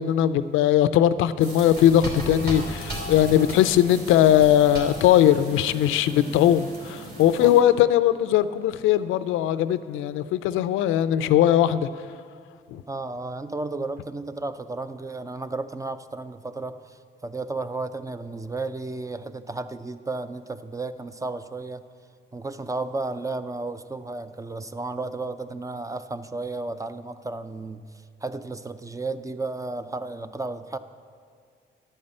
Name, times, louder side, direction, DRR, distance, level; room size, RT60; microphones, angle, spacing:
voice 1, 0.0-11.9 12.7-12.8, left 11 dB, 90° left, 14 dB, 0.4 m, -20 dB
sound 1, 1.4-7.6, right 1 dB, 50° right, 2.8 m, -36 dB
voice 2, 6.1-6.5 7.4-7.6 12.9-21.8 22.3-27.8 28.2-30.8, right 3 dB, 15° right, 12 dB, 0.4 m, -33 dB
11.0 x 5.4 x 8.7 m, 2.2 s
cardioid pair, 90°, 20 cm